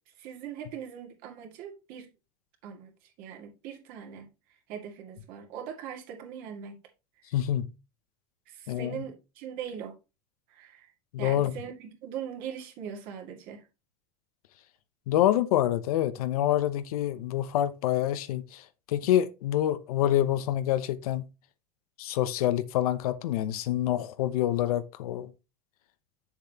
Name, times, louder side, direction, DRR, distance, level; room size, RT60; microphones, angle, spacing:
voice 1, 0.2-2.1 2.6-4.3 4.7-6.8 8.5-10.0 10.5-10.9 11.2-13.6, right 8 dB, 50° right, 2.2 m, -41 dB
voice 2, 7.3-7.7 8.7-9.0 11.1-11.5 15.1-21.3 22.0-25.3, left 12 dB, 90° left, 0.8 m, -27 dB
7.6 x 7.1 x 2.9 m
supercardioid pair, 145°, 18 cm